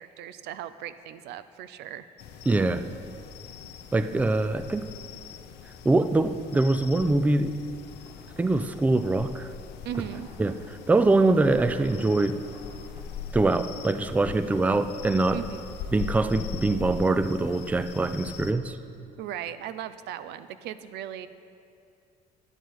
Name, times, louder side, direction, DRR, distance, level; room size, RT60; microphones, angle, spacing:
voice 1, 0.0-2.0 3.5-3.7 9.8-10.3 15.3-15.8 19.2-21.3, right 10 dB, 80° right, 13 dB, 0.5 m, -37 dB
sound 1, 2.2-18.5, left 7 dB, 80° left, 0.6 m, -41 dB
voice 2, 2.5-2.9 3.9-4.9 5.8-7.6 8.4-9.5 10.4-12.5 13.3-15.4 15.9-18.8, right 2 dB, 10° right, 11 dB, 0.4 m, -23 dB
sound 2, 7.8-13.0, right 1 dB, 30° right, 2.1 m, -52 dB
11.0 x 9.0 x 4.7 m, 2.5 s
cardioid pair, 110°, 17 cm